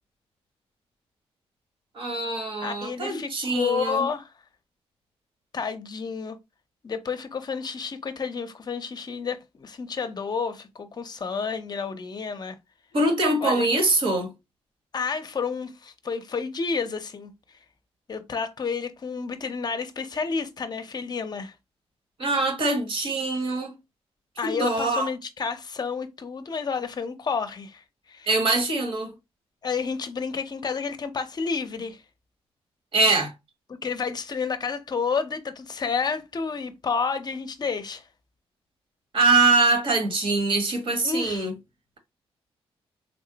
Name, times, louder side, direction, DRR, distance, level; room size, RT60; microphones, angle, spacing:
voice 1, 1.9-4.0 12.9-14.3 22.2-23.7 24.4-25.1 28.3-29.1 32.9-33.3 39.1-41.5, right 2 dB, 55° right, 1.3 m, -23 dB
voice 2, 2.6-4.3 5.5-6.4 6.8-12.6 13.4-13.7 14.9-17.3 18.1-21.5 24.4-28.3 29.6-32.0 33.7-38.1 41.0-41.5, left 5 dB, 40° left, 0.6 m, -30 dB
3.4 x 2.1 x 3.9 m
cardioid pair, 100°, 11 cm